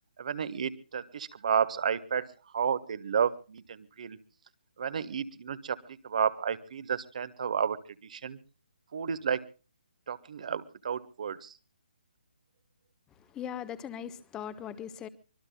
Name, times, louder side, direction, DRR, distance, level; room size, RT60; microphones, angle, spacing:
voice 1, 0.2-2.3 2.5-4.2 4.8-8.4 8.9-9.5 10.1-11.5, right 7 dB, 50° right, 13 dB, 1.5 m, -31 dB
voice 2, 13.3-15.1, left 9 dB, 15° left, 14 dB, 1.2 m, -39 dB
25.0 x 21.5 x 2.3 m, 0.36 s
figure-of-eight pair, 140°, 5 cm